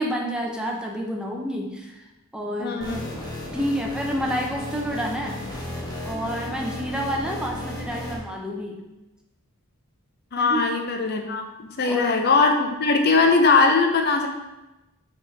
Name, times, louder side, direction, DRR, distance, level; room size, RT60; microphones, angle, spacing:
voice 1, 0.0-2.0 2.3-3.1 3.5-5.4 6.0-8.8 10.4-10.7 11.8-12.1, equal, 5° right, -1 dB, 0.7 m, -29 dB
voice 2, 2.6-3.1 10.3-14.3, left 4 dB, 45° left, 4 dB, 0.6 m, -20 dB
sound 1, 2.8-8.2, left 1 dB, 20° left, 1.2 m, -34 dB
5.8 x 5.6 x 3.3 m, 1.0 s
head